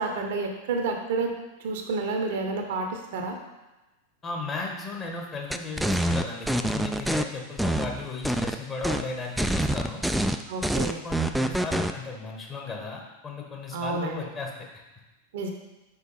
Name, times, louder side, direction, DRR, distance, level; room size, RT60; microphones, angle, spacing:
voice 1, 0.0-3.4 10.5-11.0 13.7-14.3 15.3-15.5, right 3 dB, 55° right, 3 dB, 0.8 m, -30 dB
voice 2, 4.2-10.0 11.0-14.5, left 3 dB, 25° left, 0 dB, 1.2 m, -35 dB
sound 1, 5.5-7.2 7.6-8.6 8.8-9.0 9.4-11.9, right 1 dB, ahead, 0.3 m, -26 dB
5.6 x 4.8 x 4.0 m, 1.1 s
figure-of-eight pair, 90°, 0 cm